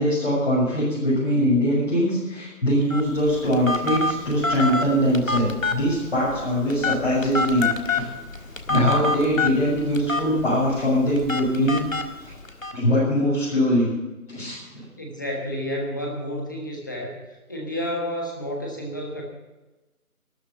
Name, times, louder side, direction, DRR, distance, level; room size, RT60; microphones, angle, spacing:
voice 1, 0.0-8.0 8.7-11.8 12.7-13.9 14.3-14.8, equal, 45° left, -8 dB, 6.8 m, -22 dB
Telephone, 2.9-12.7, left 3 dB, 65° left, 1.8 m, -28 dB
voice 2, 14.9-17.2 17.5-19.2, equal, 15° left, 0 dB, 1.3 m, -30 dB
13.0 x 13.0 x 7.0 m, 1.1 s
figure-of-eight pair, 160°, 44 cm